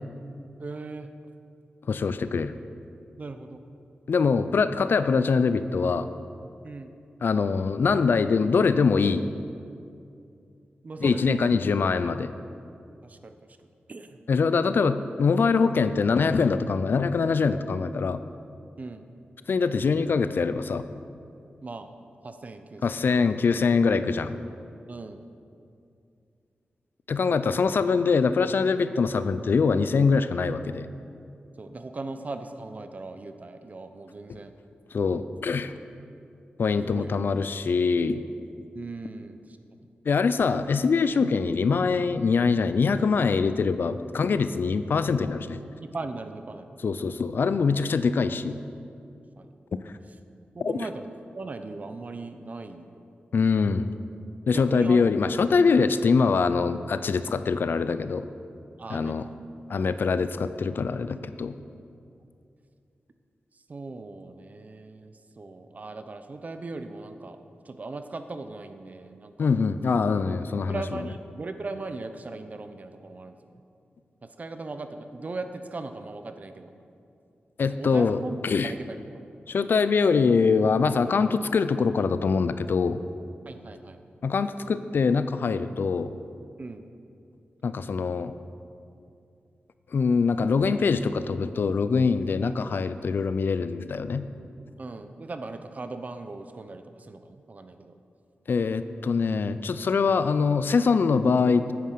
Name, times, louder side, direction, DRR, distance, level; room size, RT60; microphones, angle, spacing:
voice 1, 0.6-1.1 3.2-3.6 6.6-6.9 10.8-11.4 12.0-12.1 13.0-13.3 13.9-14.2 18.8-19.1 21.6-21.9 22.2-23.0 24.9-25.2 27.3-27.6 31.6-34.5 36.9-37.1 38.7-39.9 45.9-46.8 49.4-49.5 50.5-51.1 51.3-53.0 54.5-55.0 58.8-59.2 59.8-59.9 63.5-67.4 67.6-69.5 70.7-73.6 74.2-76.7 77.8-79.2 83.4-84.0 86.6-86.9 92.4-92.5 94.8-97.9, right 3 dB, 45° right, 8 dB, 0.8 m, -39 dB
voice 2, 1.9-2.5 4.1-6.1 7.2-9.2 11.0-12.3 14.3-18.2 19.5-20.8 22.8-24.3 27.1-30.9 34.9-35.7 36.6-38.2 40.1-45.6 46.8-48.5 50.6-50.7 53.3-53.9 54.5-58.3 58.9-59.3 59.7-61.5 69.4-70.8 77.6-78.7 79.5-83.0 84.2-86.1 87.6-88.3 89.9-94.2 98.5-101.7, left 5 dB, 65° left, 12 dB, 0.5 m, -23 dB
9.5 x 9.3 x 6.6 m, 2.5 s
wide cardioid pair, 95°, 4 cm